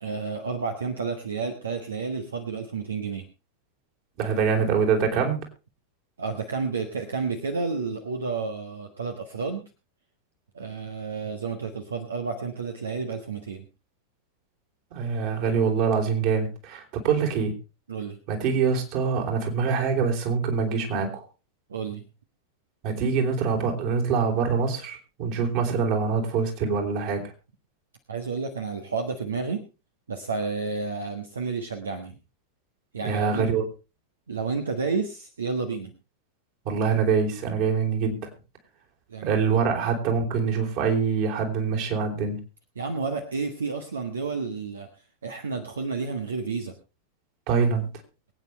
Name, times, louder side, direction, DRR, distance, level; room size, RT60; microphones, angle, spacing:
voice 1, 0.0-3.3 6.2-9.6 10.5-13.6 17.9-18.2 21.7-22.0 28.1-29.6 30.1-32.2 32.9-33.5 34.3-35.9 39.1-39.5 42.7-44.9 45.2-46.7, right 4 dB, 70° right, 6 dB, 1.4 m, -31 dB
voice 2, 4.2-5.4 14.9-17.5 18.3-21.2 22.8-27.3 33.0-33.7 36.6-38.3 39.2-42.4 47.5-47.9, right 5 dB, 45° right, 2 dB, 3.8 m, -24 dB
23.0 x 9.1 x 3.3 m, 0.30 s
figure-of-eight pair, 90°, 0 cm